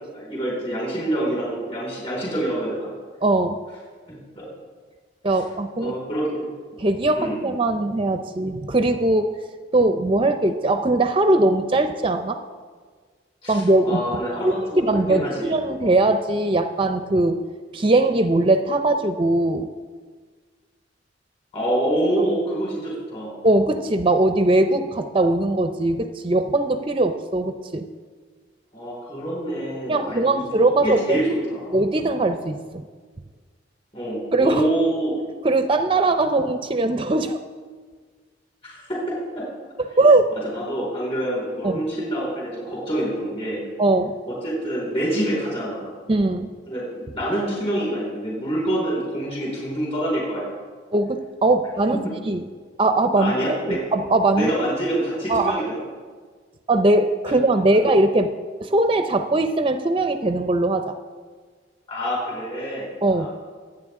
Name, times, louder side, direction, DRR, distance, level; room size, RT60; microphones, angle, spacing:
voice 1, 0.1-2.9 4.3-4.5 5.8-6.5 7.1-7.4 13.4-15.5 21.5-23.3 28.7-30.5 30.8-31.8 33.9-35.2 38.6-39.4 40.3-43.6 44.2-45.9 46.7-50.4 53.2-53.8 54.3-55.8 61.9-63.3, right 1 dB, 30° left, -5 dB, 5.0 m, -26 dB
voice 2, 3.2-3.6 5.2-5.9 6.8-9.3 9.7-12.4 13.5-14.0 14.4-17.4 17.7-19.7 23.4-27.9 29.9-31.2 31.7-32.6 34.3-34.6 35.4-37.4 40.0-40.3 41.6-41.8 43.8-44.2 46.1-46.5 50.9-52.0 52.3-52.4 52.8-54.5 55.3-55.6 56.7-58.3 58.6-61.0 63.0-63.3, right 2 dB, 30° right, 8 dB, 0.5 m, -20 dB
25.0 x 9.2 x 3.7 m, 1.5 s
head